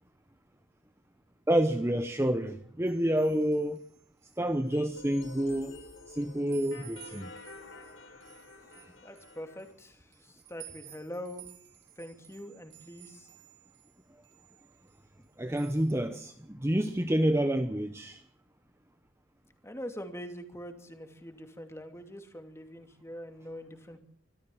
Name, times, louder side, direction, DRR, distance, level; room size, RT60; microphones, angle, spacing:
voice 1, 1.5-3.8 4.4-5.7 6.1-7.3 15.4-18.2, right 1 dB, 15° right, 0.9 m, -28 dB
sound 1, 2.9-4.8 5.1-6.1 6.5-14.0 14.2-15.3 15.6-15.9, right 13 dB, 65° right, 4.3 m, -54 dB
sound 2, 4.7-9.7, left 3 dB, 75° left, 5.1 m, -50 dB
voice 2, 9.0-11.5 12.0-13.3 15.2-15.3 19.6-24.0, equal, 15° left, 2.6 m, -43 dB
25.5 x 14.0 x 7.8 m
head